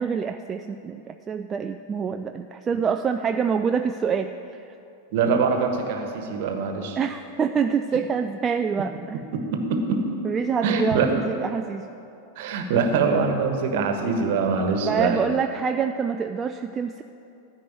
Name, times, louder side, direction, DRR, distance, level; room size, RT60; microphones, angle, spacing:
voice 1, 0.0-4.7 7.0-9.2 10.2-11.9 14.9-17.0, right 6 dB, 20° right, 7 dB, 0.3 m, -26 dB
voice 2, 5.1-7.0 9.3-10.0 10.6-11.1 12.3-15.3, right 5 dB, 50° right, 4 dB, 1.3 m, -23 dB
13.0 x 5.0 x 8.9 m, 2.8 s
figure-of-eight pair, 90°, 0 cm